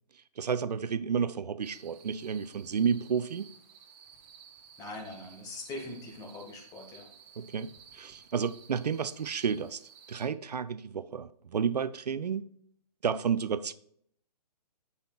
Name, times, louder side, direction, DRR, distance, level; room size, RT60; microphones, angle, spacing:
voice 1, 0.1-3.5 7.4-9.8 10.1-12.5 13.0-13.7, right 6 dB, 75° right, 0.5 m, -31 dB
sound 1, 1.6-10.3, right 7 dB, 25° right, 1.0 m, -55 dB
voice 2, 4.8-7.1, left 2 dB, 15° left, 1.6 m, -42 dB
8.8 x 5.6 x 2.4 m
figure-of-eight pair, 135°, 21 cm